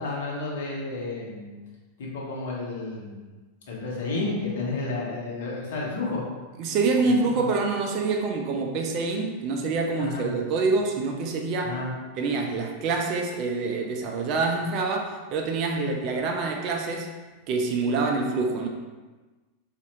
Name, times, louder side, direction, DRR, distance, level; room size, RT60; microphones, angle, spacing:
voice 1, 0.0-1.5 2.0-3.2 3.7-6.2 7.0-7.5 10.0-10.3 11.6-11.9 15.7-16.0, left 3 dB, 55° left, -4 dB, 0.9 m, -31 dB
voice 2, 6.6-11.7 12.2-17.1 17.5-18.7, right 3 dB, 40° right, 2 dB, 0.4 m, -26 dB
4.1 x 2.5 x 2.9 m, 1.3 s
figure-of-eight pair, 90°, 0 cm